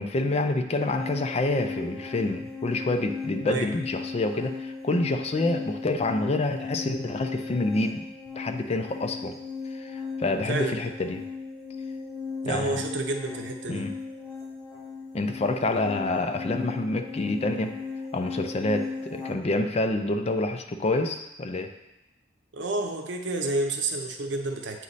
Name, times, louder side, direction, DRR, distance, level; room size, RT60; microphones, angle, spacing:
voice 1, 0.0-8.0 8.4-9.3 9.7-11.2 12.5-12.8 13.7-13.9 15.1-17.7 18.1-21.7, left 2 dB, 35° left, 7 dB, 0.4 m, -27 dB
sound 1, 0.7-19.3, left 4 dB, 15° left, 1.1 m, -37 dB
voice 2, 10.5-10.8 12.4-13.9 22.5-24.8, right 2 dB, 80° right, 4 dB, 0.7 m, -29 dB
8.3 x 3.1 x 4.0 m, 0.91 s
head